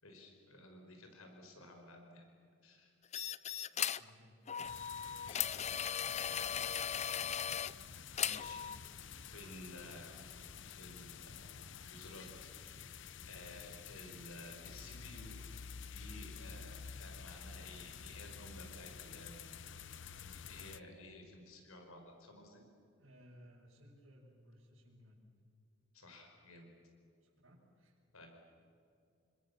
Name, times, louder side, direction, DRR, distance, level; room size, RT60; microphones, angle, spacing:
voice 1, 0.0-2.3 2.6-2.9 6.3-6.5 6.9-7.2 7.7-8.6 9.1-10.2 10.6-11.4 11.8-12.5 13.3-15.4 15.9-19.3 20.2-22.6 25.9-26.7 28.1-28.3, left 2 dB, 85° left, 3 dB, 5.4 m, -54 dB
sound 1, 3.1-4.1 4.5-7.7 8.2-8.8, left 9 dB, 30° left, 0.6 m, -37 dB
voice 2, 4.0-4.4 23.0-25.2 27.2-28.0, equal, 75° right, -5 dB, 6.8 m, -61 dB
sound 2, 4.6-20.8, left 6 dB, 60° left, 0.8 m, -50 dB
30.0 x 26.0 x 7.1 m, 2.5 s
head